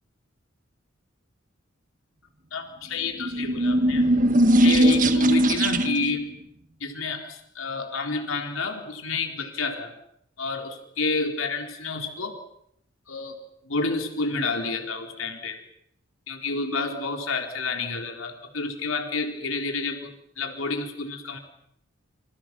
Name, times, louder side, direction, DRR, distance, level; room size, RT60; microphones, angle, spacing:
voice 1, 2.5-4.1 4.6-6.3 6.8-9.9 10.4-12.4 13.1-13.4 13.7-15.6 16.3-21.4, left 3 dB, 80° left, 4 dB, 4.0 m, -29 dB
sound 1, 3.1-6.2, right 1 dB, 40° right, 1.6 m, -20 dB
28.5 x 27.5 x 6.2 m, 0.74 s
head